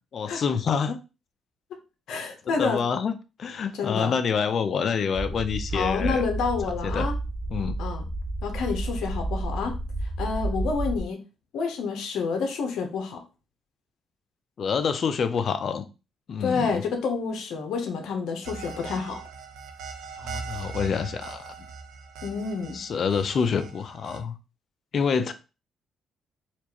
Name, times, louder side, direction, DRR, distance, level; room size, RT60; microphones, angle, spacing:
voice 1, 0.1-1.0 2.5-3.1 3.4-6.2 6.8-7.1 7.5-7.8 14.6-15.9 16.3-16.8 20.2-21.5 22.7-24.3 24.9-25.3, left 6 dB, 55° left, 0.5 m, -27 dB
voice 2, 2.1-2.8 3.8-4.1 5.7-7.1 7.8-8.0 8.4-9.7 10.2-11.2 11.5-13.2 16.4-19.2 22.2-22.8, left 5 dB, 80° left, 0.8 m, -28 dB
sound 1, 5.1-11.0, right 2 dB, ahead, 0.7 m, -31 dB
sound 2, 18.4-24.2, right 5 dB, 90° right, 0.6 m, -40 dB
4.4 x 2.5 x 2.9 m
cardioid pair, 90°, 0 cm